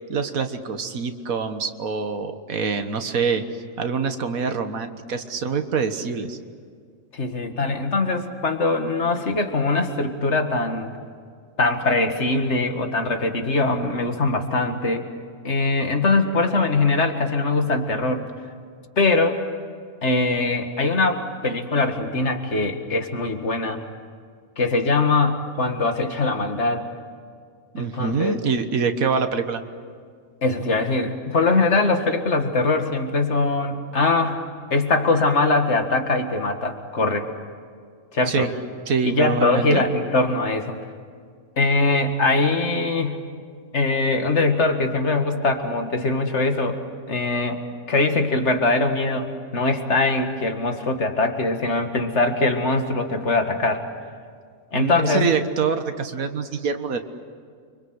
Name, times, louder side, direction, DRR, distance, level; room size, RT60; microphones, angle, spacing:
voice 1, 0.1-3.4 3.8-6.4 27.7-29.6 38.3-38.5 38.9-39.8 54.7-57.0, right 5 dB, 85° right, 7 dB, 1.8 m, -25 dB
voice 2, 7.1-10.9 11.6-15.1 15.4-18.3 19.0-19.4 20.0-23.8 24.6-26.8 27.8-28.4 30.4-34.4 34.7-37.3 38.1-38.5 39.0-40.8 41.6-43.3 43.7-46.8 47.1-47.6 47.9-53.9 54.7-55.3, left 3 dB, 55° left, 6 dB, 2.2 m, -22 dB
29.5 x 24.5 x 8.0 m, 2.1 s
omnidirectional pair, 1.4 m